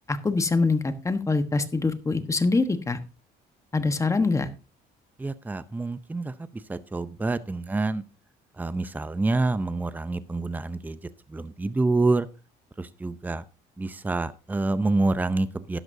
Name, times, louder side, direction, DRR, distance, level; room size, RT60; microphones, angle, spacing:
voice 1, 0.1-3.0 3.7-4.5, left 3 dB, 20° left, 9 dB, 1.2 m, -24 dB
voice 2, 5.2-8.0 8.6-11.0 11.3-12.3 12.8-13.4 13.8-15.8, right 2 dB, 10° right, 14 dB, 0.6 m, -27 dB
12.0 x 11.0 x 2.7 m, 0.31 s
cardioid pair, 110°, 17 cm